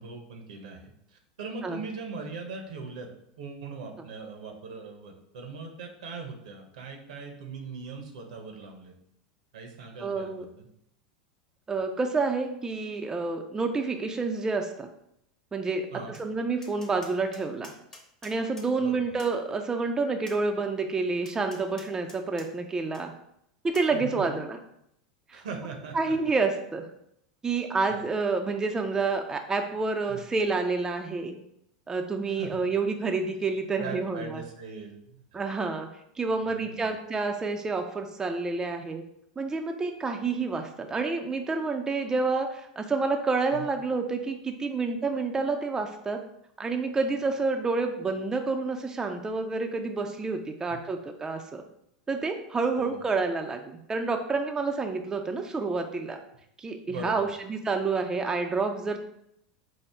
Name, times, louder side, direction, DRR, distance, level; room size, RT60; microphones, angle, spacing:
voice 1, 0.0-3.1 3.4-8.9 9.5-10.7 15.9-16.2 18.8-19.0 23.9-24.4 25.3-26.2 27.9-28.0 30.1-30.3 32.3-32.7 33.8-35.2 36.4-36.9 43.5-43.7 50.7-50.8 52.8-53.0 56.9-57.3, right 4 dB, 75° right, 3 dB, 0.8 m, -40 dB
voice 2, 10.0-10.5 11.7-14.9 15.5-15.9 16.2-17.7 18.2-23.1 23.7-24.6 25.3-25.4 25.9-26.8 27.4-31.4 31.9-34.4 35.3-35.9 36.2-39.0 39.4-46.2 46.6-51.6 52.1-56.2 56.6-59.0, right 4 dB, 15° right, 4 dB, 0.4 m, -29 dB
Tap, 16.1-16.3 16.6-18.7 19.2-19.4 20.3-20.4 21.3-22.5 22.9-23.0 23.7-23.9, left 2 dB, 15° left, 0.9 m, -49 dB
4.7 x 2.0 x 3.4 m, 0.74 s
hypercardioid pair, 95°, 4 cm